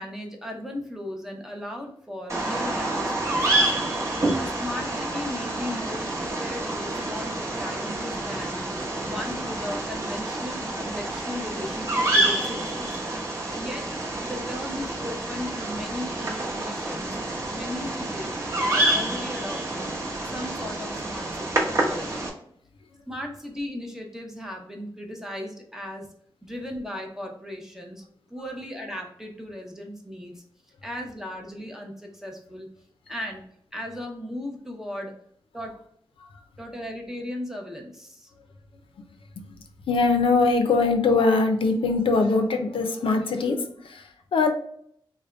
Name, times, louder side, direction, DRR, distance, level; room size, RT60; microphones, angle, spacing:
voice 1, 0.0-3.7 4.3-8.6 9.0-12.9 13.5-13.8 14.2-17.1 17.5-18.4 18.7-19.9 20.3-22.2 23.1-26.1 26.4-28.0 28.3-30.4 30.8-32.7 33.1-33.4 33.7-35.1 35.5-35.7 36.6-38.3, left 1 dB, 5° right, 1 dB, 0.7 m, -36 dB
Bird vocalization bird call bird song, 2.3-22.3, right 2 dB, 35° right, 0.9 m, -28 dB
voice 2, 39.9-44.5, left 3 dB, 85° left, 5 dB, 0.6 m, -22 dB
3.4 x 2.2 x 3.7 m, 0.66 s
wide cardioid pair, 150°, 9 cm